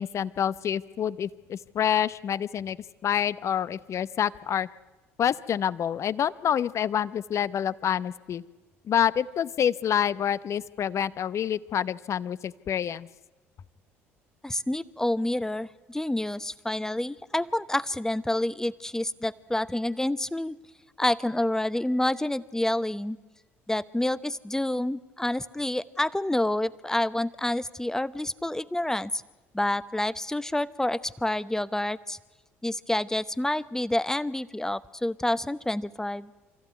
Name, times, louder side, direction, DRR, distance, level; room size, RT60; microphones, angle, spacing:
voice 1, 0.0-2.8 3.0-4.7 5.2-8.4 8.8-13.1, left 9 dB, 45° left, 17 dB, 0.8 m, -27 dB
voice 2, 14.4-20.6 21.0-23.2 23.7-29.2 29.5-32.2 32.6-36.3, left 1 dB, 5° left, 16 dB, 0.9 m, -28 dB
25.5 x 15.0 x 9.4 m, 1.2 s
figure-of-eight pair, 55°, 7 cm